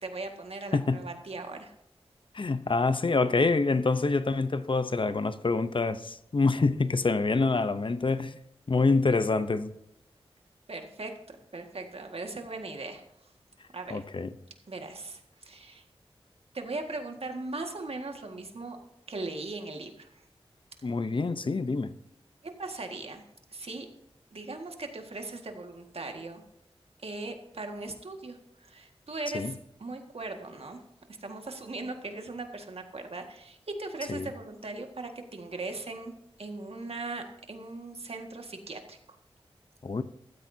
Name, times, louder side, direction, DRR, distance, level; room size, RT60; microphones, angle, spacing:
voice 1, 0.0-1.7 10.7-11.1 11.5-13.0 13.7-14.0 14.7-15.8 16.5-18.8 19.1-20.2 22.6-23.2 23.5-23.9 24.3-26.4 27.0-30.8 31.2-36.1 36.4-39.2, right 3 dB, 70° right, 1.9 m, -39 dB
voice 2, 0.7-1.0 2.3-8.4 8.7-9.7 13.9-14.3 20.8-21.9 29.3-29.5 34.1-34.3 39.8-40.0, left 3 dB, 55° left, 0.8 m, -26 dB
14.5 x 13.0 x 2.8 m
wide cardioid pair, 65°, 10 cm